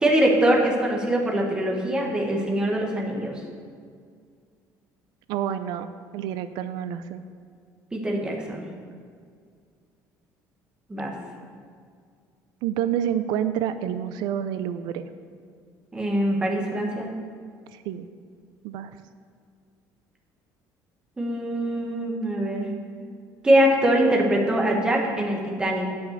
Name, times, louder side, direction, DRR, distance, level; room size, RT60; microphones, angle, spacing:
voice 1, 0.0-3.4 7.9-8.7 10.9-11.1 15.9-17.1 21.2-22.7 23.4-25.9, right 1 dB, 10° right, -1 dB, 1.2 m, -23 dB
voice 2, 5.3-7.2 12.6-15.1 17.7-18.1 18.6-19.0, right 10 dB, 90° right, 11 dB, 0.4 m, -28 dB
9.8 x 5.7 x 6.6 m, 2.1 s
cardioid pair, 175°, 7 cm